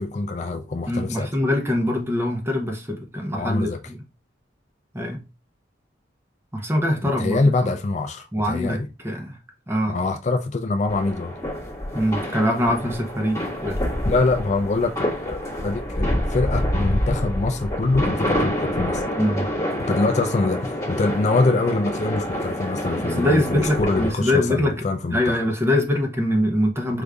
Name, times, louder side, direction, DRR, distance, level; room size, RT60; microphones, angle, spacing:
voice 1, 0.0-1.3 3.3-3.8 7.0-8.9 9.9-11.3 14.0-19.0 19.9-25.4, left 3 dB, 40° left, 0.4 m, -24 dB
voice 2, 0.8-4.0 4.9-5.2 6.5-7.7 8.3-9.4 9.7-10.0 11.9-13.8 19.2-19.5 23.0-24.8 25.1-27.0, left 1 dB, 15° right, 0.8 m, -23 dB
sound 1, 10.9-24.1, equal, 15° left, 1.3 m, -27 dB
4.9 x 2.6 x 3.4 m
head